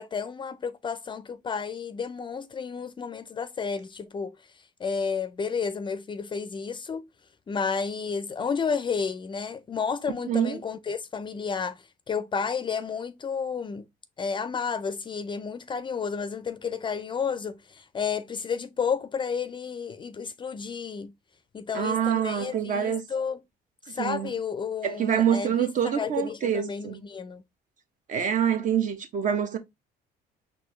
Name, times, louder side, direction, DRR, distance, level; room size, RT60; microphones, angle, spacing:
voice 1, 0.0-4.4 4.8-7.1 7.5-13.9 14.2-21.1 21.5-23.4 23.9-27.4, left 6 dB, 30° left, 0.4 m, -31 dB
voice 2, 10.3-10.6 21.7-23.0 23.9-24.3 24.8-27.0 28.1-29.6, right 8 dB, 50° right, 1.0 m, -26 dB
4.3 x 2.7 x 3.1 m
cardioid pair, 110°, 17 cm